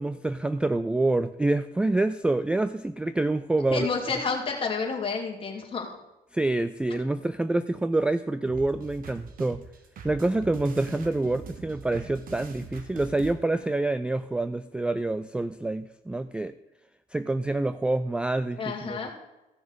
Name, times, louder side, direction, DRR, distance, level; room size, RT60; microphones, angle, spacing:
voice 1, 0.0-3.9 6.3-9.6 10.0-16.6 17.1-19.1, right 2 dB, 5° right, 13 dB, 0.3 m, -27 dB
voice 2, 3.7-5.9 6.9-7.0 18.6-19.1, left 5 dB, 30° left, 1 dB, 2.7 m, -30 dB
sound 1, 8.5-13.3, right 5 dB, 55° right, 1.5 m, -42 dB
15.0 x 6.1 x 5.2 m, 1.0 s
cardioid pair, 110°, 17 cm